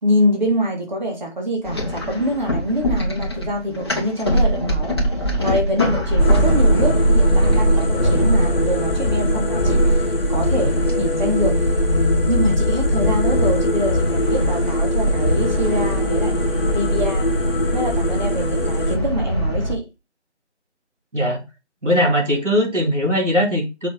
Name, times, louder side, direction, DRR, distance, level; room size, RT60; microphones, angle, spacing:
voice 1, 0.0-5.0 5.4-10.0 10.3-11.7 12.3-16.4 16.7-17.3 17.7-19.9, equal, 40° right, 3.2 m, -25 dB
sound 1, 1.6-19.7, equal, 20° left, 1.2 m, -20 dB
sound 2, 6.2-19.0, left 2 dB, 50° left, 0.9 m, -25 dB
voice 2, 21.8-23.9, equal, 90° right, 3.6 m, -19 dB
6.7 x 6.1 x 4.0 m
figure-of-eight pair, 165°, 35 cm